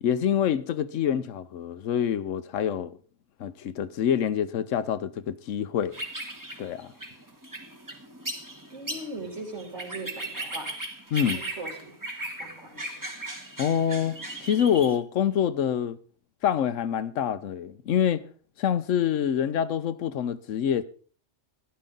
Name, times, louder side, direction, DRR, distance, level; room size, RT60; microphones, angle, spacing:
voice 1, 0.0-3.0 3.4-5.9 6.6-6.9 11.1-11.4 13.6-16.0 16.4-18.2 18.6-20.8, left 9 dB, 80° left, 1.1 m, -26 dB
sound 1, 5.9-15.0, right 1 dB, 15° right, 1.3 m, -37 dB
voice 2, 8.7-10.7 11.3-11.9 12.4-13.1, right 2 dB, 65° right, 3.4 m, -39 dB
13.0 x 11.5 x 3.9 m
omnidirectional pair, 1.3 m